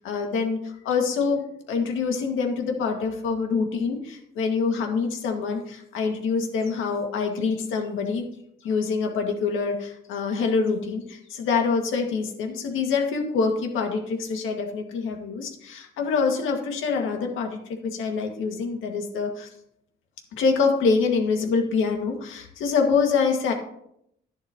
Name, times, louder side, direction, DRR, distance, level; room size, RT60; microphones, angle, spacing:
voice 1, 0.0-8.2 8.6-19.5 20.3-23.5, left 5 dB, 85° left, 3 dB, 2.0 m, -25 dB
11.0 x 11.0 x 3.0 m, 0.74 s
cardioid pair, 90°, 20 cm